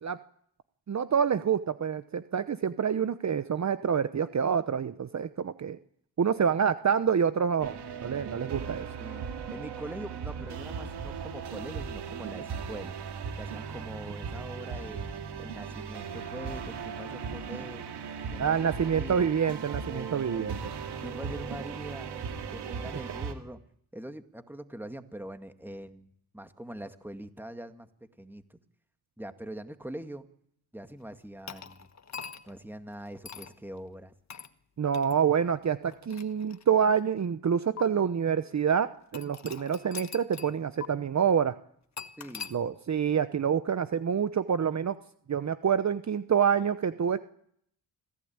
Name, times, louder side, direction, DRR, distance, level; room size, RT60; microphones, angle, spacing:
voice 1, 0.9-5.8 6.2-8.9 18.4-20.7 34.8-41.6 42.5-45.0 45.3-47.2, right 7 dB, 45° right, 12 dB, 0.9 m, -27 dB
sound 1, 7.6-23.3, right 6 dB, 90° right, 2.5 m, -38 dB
voice 2, 9.5-13.0 13.4-15.1 15.4-17.9 18.3-19.3 19.9-20.6 21.0-22.1 22.5-23.6 23.9-26.1 26.3-27.9 28.2-28.6 29.2-30.3 30.7-31.9 32.5-34.1 42.2-42.6, right 1 dB, 5° right, 8 dB, 2.0 m, -43 dB
sound 2, 31.5-32.6 33.2-33.6 34.3-34.5 34.9-35.1 35.9-37.0 37.8-37.9 39.1-40.5 40.8-40.9 42.0-42.6, left 6 dB, 45° left, 1.4 m, -42 dB
26.0 x 16.0 x 8.8 m, 0.69 s
cardioid pair, 70°, 39 cm